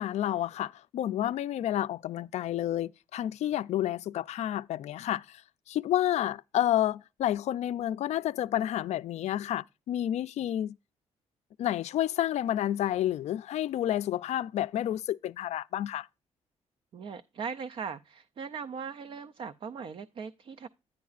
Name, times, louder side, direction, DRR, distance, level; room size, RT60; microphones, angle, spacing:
voice 1, 0.0-10.8 11.6-16.1, left 12 dB, 75° left, 0.4 m, -30 dB
voice 2, 16.9-20.7, right 6 dB, 50° right, 0.4 m, -39 dB
10.5 x 9.3 x 2.4 m
cardioid pair, 135°, 12 cm